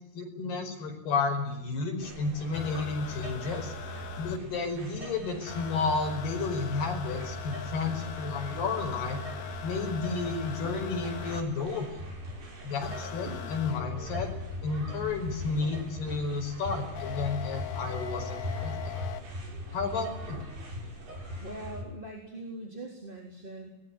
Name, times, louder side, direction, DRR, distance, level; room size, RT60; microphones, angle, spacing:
voice 1, 0.1-3.7 4.2-9.2 9.6-12.0 12.6-14.3 14.6-18.8 19.7-20.4, left 4 dB, 75° left, 4 dB, 7.1 m, -32 dB
sound 1, 2.0-21.8, right 2 dB, 70° right, 8.0 m, -45 dB
sound 2, 2.5-4.4 5.5-11.4 12.8-15.8 16.9-19.2 20.4-20.5, left 4 dB, 50° left, 2.5 m, -39 dB
voice 2, 18.4-19.5 20.7-20.8 21.1-23.7, left 1 dB, 15° right, 1 dB, 3.4 m, -39 dB
24.0 x 20.5 x 9.8 m, 0.86 s
omnidirectional pair, 4.7 m